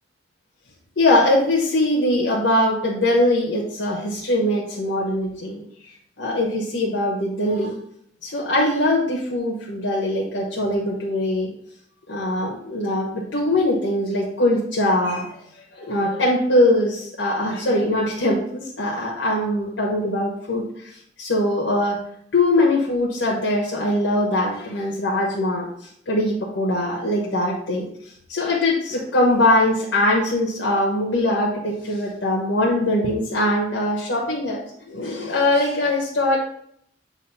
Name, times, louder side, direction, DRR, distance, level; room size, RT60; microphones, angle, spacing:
voice 1, 1.0-5.6 6.2-7.7 8.2-11.5 12.1-15.4 15.7-20.9 21.2-22.0 22.3-27.8 28.3-34.6 34.9-36.4, left 1 dB, 80° left, -3 dB, 1.1 m, -21 dB
7.2 x 2.6 x 5.5 m, 0.69 s
head